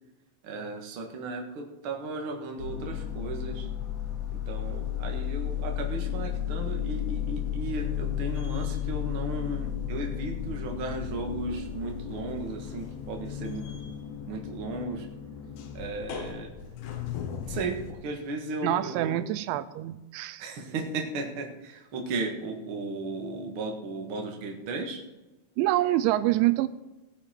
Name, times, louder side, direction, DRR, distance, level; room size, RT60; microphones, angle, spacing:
voice 1, 0.4-3.7 4.3-13.8 14.3-15.1 15.7-16.5 17.5-19.2 20.4-25.0, right 3 dB, 55° right, 2 dB, 1.4 m, -35 dB
sound 1, 2.6-17.9, left 10 dB, 70° left, 2.7 m, -34 dB
voice 2, 18.6-20.4 25.6-26.7, right 15 dB, 90° right, 14 dB, 2.9 m, -26 dB
17.0 x 10.0 x 4.5 m, 1.1 s
omnidirectional pair, 5.2 m